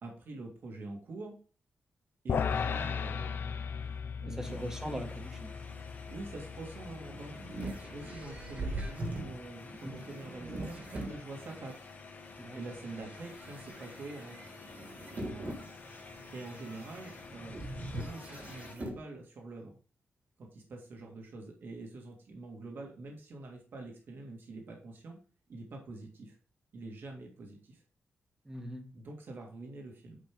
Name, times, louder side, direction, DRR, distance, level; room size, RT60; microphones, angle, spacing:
voice 1, 0.0-1.4 2.2-3.7 4.2-4.6 5.8-7.4 7.9-11.9 12.5-14.4 15.1-15.7 16.3-17.6 17.9-19.8 20.4-25.2 25.5-26.4 26.7-27.8 28.9-30.2, right 2 dB, 55° right, 1 dB, 2.1 m, -45 dB
sound 1, 2.3-8.7, left 6 dB, 60° left, 0.6 m, -37 dB
voice 2, 4.3-5.5 9.8-10.0 12.4-12.6 28.4-28.8, right 1 dB, 15° right, 5 dB, 1.5 m, -40 dB
sound 2, 4.4-18.8, left 4 dB, 40° left, 1.5 m, -50 dB
sound 3, 6.7-11.8 12.4-19.0, right 1 dB, 40° right, 2.1 m, -42 dB
9.4 x 5.3 x 3.6 m, 0.39 s
wide cardioid pair, 170°, 4 cm